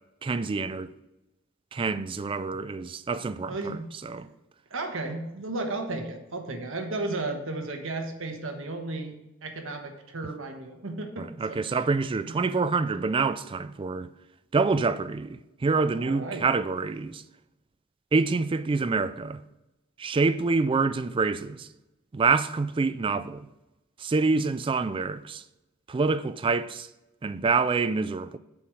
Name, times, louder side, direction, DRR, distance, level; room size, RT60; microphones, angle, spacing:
voice 1, 0.2-0.9 1.7-3.8 4.0-4.3 11.2-14.1 14.5-17.2 18.1-19.4 20.0-21.7 22.1-23.5 24.0-25.4 25.9-26.9 27.2-28.4, right 4 dB, 25° right, 0.3 m, -26 dB
voice 2, 3.5-4.3 4.7-9.1 9.4-11.8 12.3-12.4 16.0-16.5, right 2 dB, 65° right, 1.2 m, -34 dB
7.0 x 4.7 x 6.4 m
head